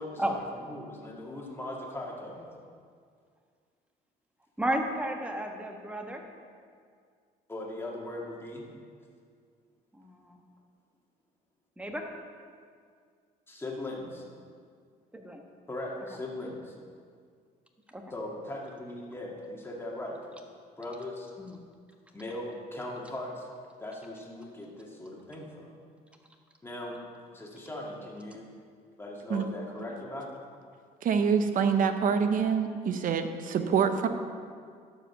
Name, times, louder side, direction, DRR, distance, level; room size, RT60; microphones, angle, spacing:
voice 1, 0.0-2.5 7.5-8.7 13.5-14.1 15.7-16.7 18.1-20.2 20.8-21.3 22.1-23.5 23.8-25.7 26.6-27.0 27.3-28.5 29.0-30.3, left 1 dB, 15° left, -2 dB, 2.0 m, -39 dB
voice 2, 4.6-6.2 9.9-10.4 11.8-12.0 15.1-15.5 17.9-18.0 21.4-21.6, right 1 dB, 5° right, 2 dB, 1.3 m, -33 dB
voice 3, 31.0-34.1, right 6 dB, 55° right, 8 dB, 0.8 m, -26 dB
12.0 x 5.1 x 6.7 m, 2.1 s
cardioid pair, 110°, 17 cm